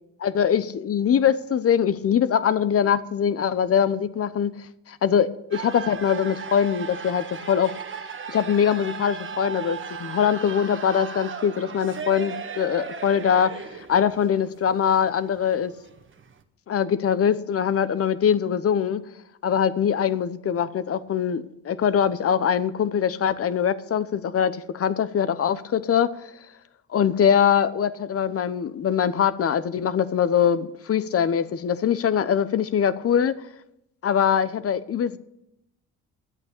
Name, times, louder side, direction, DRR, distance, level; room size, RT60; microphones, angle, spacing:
voice 1, 0.2-4.5 4.9-7.7 8.3-15.7 16.7-19.0 19.4-26.3 26.9-33.4 34.0-35.2, left 8 dB, 50° left, 14 dB, 0.9 m, -22 dB
sound 1, 5.5-16.4, right 6 dB, 40° right, 1.3 m, -37 dB
11.0 x 8.4 x 8.6 m, 0.83 s
cardioid pair, 90°, 30 cm